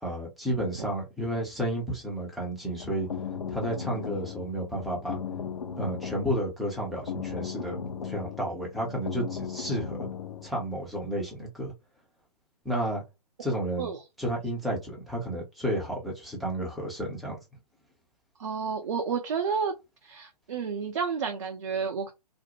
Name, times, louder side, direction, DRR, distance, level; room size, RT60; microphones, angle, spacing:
voice 1, 0.0-3.1 3.5-5.2 5.8-7.8 8.0-10.0 10.4-11.7 12.6-13.0 13.4-13.9 14.2-17.4, right 1 dB, ahead, 0.5 m, -31 dB
sound 1, 2.6-10.5, left 6 dB, 65° left, 0.7 m, -37 dB
voice 2, 18.4-19.7 20.0-22.1, right 6 dB, 50° right, 0.5 m, -30 dB
2.5 x 2.0 x 2.8 m
figure-of-eight pair, 125°, 21 cm